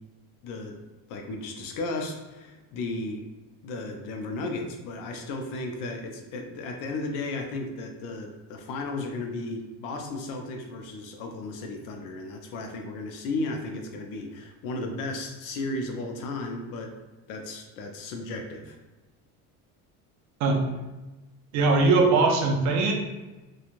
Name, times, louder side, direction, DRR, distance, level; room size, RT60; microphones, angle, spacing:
voice 1, 0.4-0.8 1.1-3.2 3.6-16.9 17.3-18.8, left 2 dB, 65° left, 3 dB, 0.6 m, -34 dB
voice 2, 21.5-22.9, right 3 dB, 55° right, 2 dB, 0.5 m, -21 dB
3.1 x 2.3 x 2.5 m, 1.1 s
cardioid pair, 165°, 35 cm